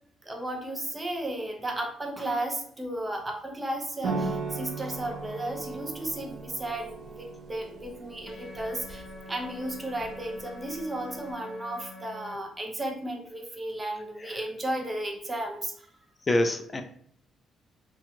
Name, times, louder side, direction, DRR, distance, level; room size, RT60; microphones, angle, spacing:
voice 1, 0.2-15.9, right 1 dB, 20° right, 2 dB, 0.6 m, -34 dB
sound 1, 4.0-11.3, right 4 dB, 80° right, 0.7 m, -38 dB
sound 2, 8.3-12.4, left 2 dB, 50° left, 0.9 m, -45 dB
voice 2, 16.3-16.8, left 1 dB, 30° left, 7 dB, 0.4 m, -26 dB
2.7 x 2.3 x 2.8 m, 0.63 s
cardioid pair, 90°, 0 cm